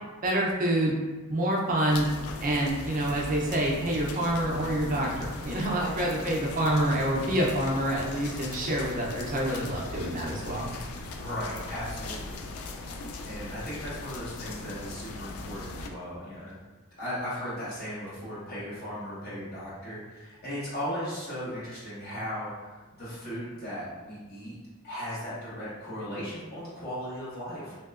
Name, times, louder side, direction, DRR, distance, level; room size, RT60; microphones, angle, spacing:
voice 1, 0.2-1.0 1.3-2.1 2.4-10.7, right 1 dB, 40° right, -2 dB, 0.5 m, -27 dB
sound 1, 1.9-15.9, left 2 dB, 85° left, 0.4 m, -39 dB
voice 2, 11.2-12.4 13.2-16.5 17.0-24.6 24.8-27.8, equal, 45° left, -10 dB, 1.4 m, -37 dB
3.2 x 2.8 x 2.4 m, 1.3 s
head